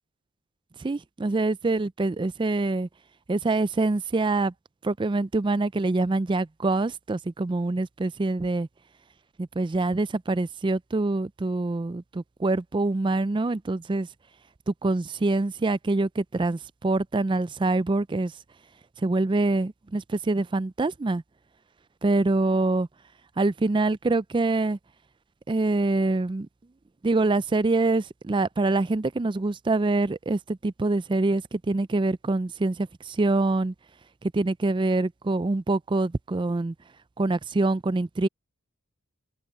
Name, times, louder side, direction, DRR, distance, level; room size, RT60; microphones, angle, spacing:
voice 1, 0.8-2.9 3.3-4.5 4.8-8.7 9.4-14.1 14.7-18.3 19.0-21.2 22.0-22.9 23.4-24.8 25.5-26.5 27.0-33.7 34.2-36.7 37.2-38.3, right 2 dB, 20° right, 0.3 m, -25 dB
head